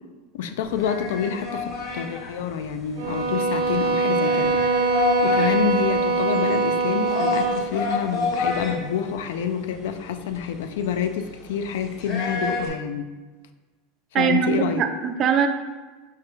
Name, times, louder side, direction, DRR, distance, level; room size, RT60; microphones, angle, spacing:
voice 1, 0.3-4.6 5.2-13.1 14.1-14.9, left 8 dB, 80° left, 9 dB, 0.3 m, -27 dB
sound 1, 0.6-12.7, left 4 dB, 45° left, 0.7 m, -30 dB
sound 2, 3.0-7.7, right 4 dB, 80° right, 0.8 m, -23 dB
voice 2, 14.1-15.5, right 8 dB, 30° right, 7 dB, 0.4 m, -21 dB
4.9 x 3.3 x 2.9 m, 1.3 s
supercardioid pair, 160°, 0 cm